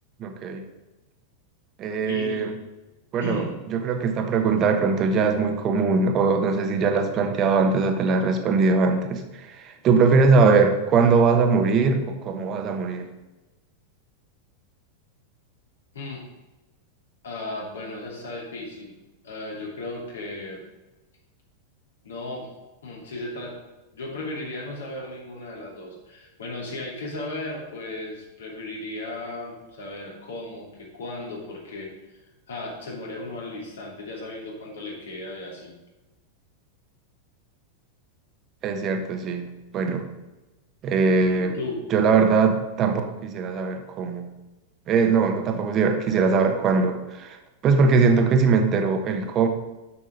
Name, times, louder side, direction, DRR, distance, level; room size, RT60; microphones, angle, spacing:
voice 1, 0.2-0.6 1.8-2.5 3.1-3.4 3.7-13.1 38.6-40.1 40.8-41.6 41.9-44.3 44.9-47.4 47.6-49.5, right 4 dB, 35° right, 6 dB, 1.1 m, -21 dB
voice 2, 2.0-2.5 3.2-3.6 15.9-16.3 17.2-18.9 19.2-20.6 22.0-22.5 22.8-23.6 23.9-32.2 32.5-35.7 41.4-41.8, left 2 dB, 70° left, -2 dB, 2.7 m, -35 dB
7.2 x 6.1 x 5.1 m, 1.1 s
figure-of-eight pair, 90°, 0 cm